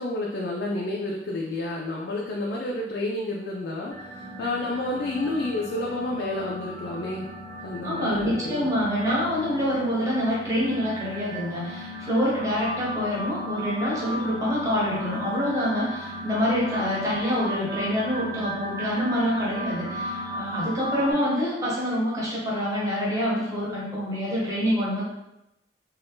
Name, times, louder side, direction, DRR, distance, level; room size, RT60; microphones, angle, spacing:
voice 1, 0.0-7.3 7.6-8.7 16.9-17.1 20.7-20.8, left 2 dB, 60° left, -2 dB, 0.4 m, -30 dB
sound 1, 3.9-21.1, equal, 75° right, 0.8 m, -36 dB
voice 2, 7.8-25.0, equal, 20° right, -6 dB, 0.9 m, -26 dB
2.5 x 2.3 x 3.4 m, 0.90 s
head